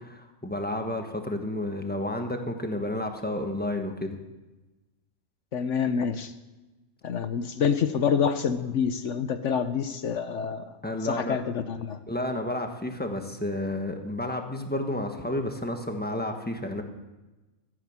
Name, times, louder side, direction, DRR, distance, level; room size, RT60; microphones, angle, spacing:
voice 1, 0.0-4.2 10.8-11.4 12.1-16.8, left 1 dB, 5° left, 4 dB, 1.3 m, -31 dB
voice 2, 5.5-6.3 7.0-10.7 11.0-12.0, left 7 dB, 70° left, 10 dB, 1.1 m, -27 dB
14.5 x 10.0 x 7.4 m, 1.1 s
omnidirectional pair, 1.4 m